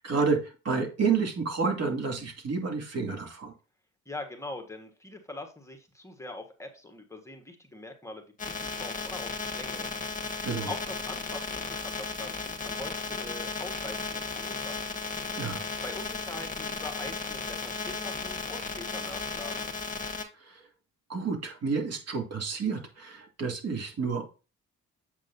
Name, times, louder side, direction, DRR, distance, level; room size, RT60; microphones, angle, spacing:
voice 1, 0.0-3.5 10.4-10.7 15.3-15.6 20.4-20.6 21.1-24.3, right 5 dB, 55° right, 2 dB, 2.4 m, -30 dB
voice 2, 4.0-9.9 10.7-15.0 15.8-19.7, left 2 dB, 10° left, 3 dB, 1.4 m, -42 dB
sound 1, 8.4-20.2, left 4 dB, 25° left, 1.5 m, -35 dB
7.9 x 6.0 x 2.6 m, 0.31 s
cardioid pair, 90°, 30 cm